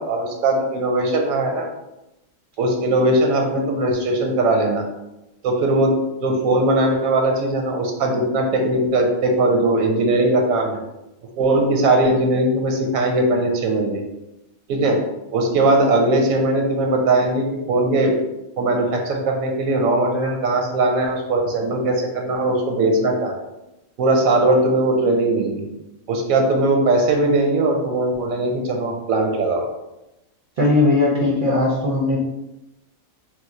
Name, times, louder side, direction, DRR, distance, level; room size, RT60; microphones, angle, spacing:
voice 1, 0.0-1.7 2.6-4.9 5.4-5.9 6.2-10.8 11.4-14.0 14.7-15.0 15.3-18.1 18.6-23.4 24.0-25.7 26.1-29.6, right 2 dB, 85° right, 2 dB, 1.0 m, -19 dB
voice 2, 30.6-32.2, left 2 dB, 55° right, -3 dB, 0.6 m, -18 dB
3.1 x 2.0 x 4.0 m, 0.93 s
omnidirectional pair, 1.4 m